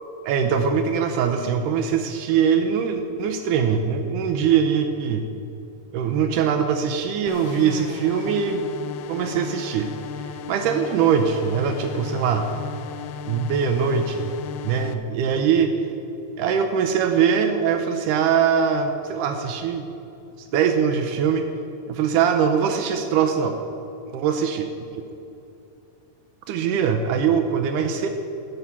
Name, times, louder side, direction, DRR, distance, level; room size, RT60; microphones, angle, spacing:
voice 1, 0.0-5.3 5.9-8.7 9.1-9.9 10.2-12.5 13.3-14.4 14.6-15.7 16.4-19.9 20.5-21.4 21.9-23.6 24.1-24.7 26.5-28.1, right 7 dB, 80° right, 6 dB, 2.1 m, -22 dB
sound 1, 7.3-14.9, left 7 dB, 80° left, 2.2 m, -35 dB
12.5 x 5.6 x 8.3 m, 2.8 s
omnidirectional pair, 3.8 m